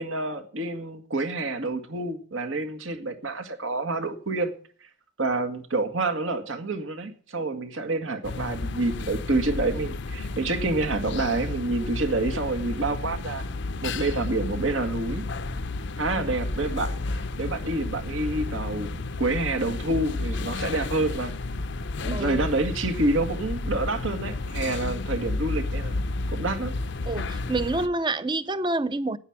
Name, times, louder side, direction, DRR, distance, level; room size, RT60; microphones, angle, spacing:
voice 1, 0.0-4.5 5.2-13.5 13.8-15.3 16.0-21.3 22.0-26.0 26.3-26.7, right 2 dB, 75° right, 1.8 m, -28 dB
sound 1, 8.2-27.9, left 2 dB, 60° left, 0.6 m, -32 dB
voice 2, 22.1-22.5 27.1-29.2, right 2 dB, 20° right, 0.6 m, -28 dB
9.6 x 9.3 x 8.7 m
head